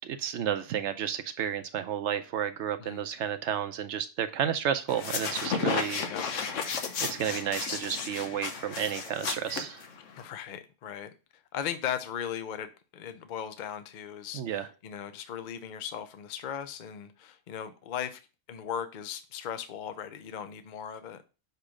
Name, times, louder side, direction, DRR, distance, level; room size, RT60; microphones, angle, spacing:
voice 1, 0.0-6.1 7.1-9.8 14.3-14.7, right 9 dB, 75° right, 10 dB, 0.9 m, -32 dB
sound 1, 4.9-10.2, left 5 dB, 90° left, 1.2 m, -33 dB
voice 2, 10.2-11.1 11.5-18.2 18.5-21.2, left 9 dB, 50° left, 10 dB, 0.6 m, -37 dB
6.7 x 3.0 x 4.8 m, 0.32 s
omnidirectional pair, 1.2 m